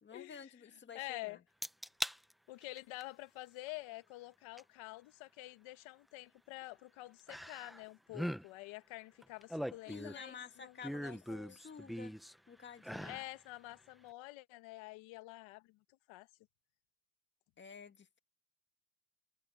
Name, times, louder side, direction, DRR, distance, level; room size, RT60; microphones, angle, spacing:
voice 1, 0.0-1.4 9.9-11.2 11.5-12.1 12.5-13.2 17.6-18.2, left 6 dB, 20° left, 1.8 m, -51 dB
voice 2, 0.9-1.4 2.5-11.6 13.0-15.8 16.1-16.3, left 19 dB, 70° left, 1.5 m, -48 dB
sound 1, 1.6-2.2 2.6-3.0 4.6-4.7 7.3-7.8 8.1-8.4 9.2-10.3 10.8-12.3 12.8-13.3 13.7-13.8, equal, ahead, 0.6 m, -41 dB
cardioid pair, 135°, 48 cm